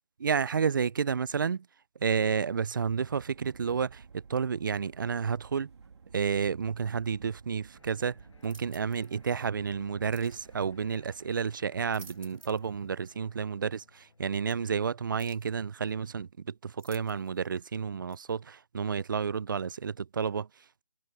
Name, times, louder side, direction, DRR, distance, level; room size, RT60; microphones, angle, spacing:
voice 1, 0.2-1.7 2.0-5.7 6.1-8.2 8.4-20.8, right 6 dB, 40° right, 0.4 m, -31 dB
sound 1, 3.0-11.6, right 5 dB, 55° right, 2.7 m, -53 dB
sound 2, 7.7-15.2, left 4 dB, 65° left, 6.6 m, -63 dB
sound 3, 8.4-9.1 10.1-10.4 11.7-12.7 13.1-13.2 14.5-14.6 15.2-15.5 16.8-17.5 18.1-18.3, right 3 dB, 85° right, 2.8 m, -54 dB
figure-of-eight pair, 160°, 17 cm